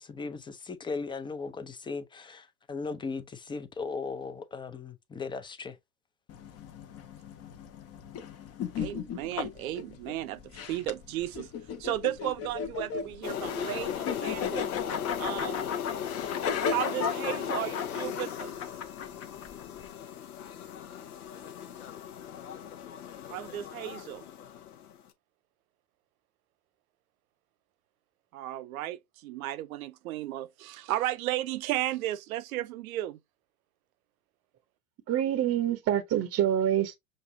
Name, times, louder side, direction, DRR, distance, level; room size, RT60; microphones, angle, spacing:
voice 1, 0.0-5.8, left 4 dB, 10° left, 0.5 m, -37 dB
sound 1, 6.3-19.9, left 6 dB, 35° left, 0.8 m, -36 dB
voice 2, 8.8-11.5 11.8-14.7 15.2-15.7 16.7-18.5 23.3-24.3 28.3-33.2, right 14 dB, 65° right, 0.7 m, -34 dB
sound 2, 13.2-25.0, left 9 dB, 75° left, 0.9 m, -37 dB
voice 3, 35.1-37.0, right 10 dB, 30° right, 0.8 m, -26 dB
6.4 x 2.6 x 2.6 m
hypercardioid pair, 90°, 45 cm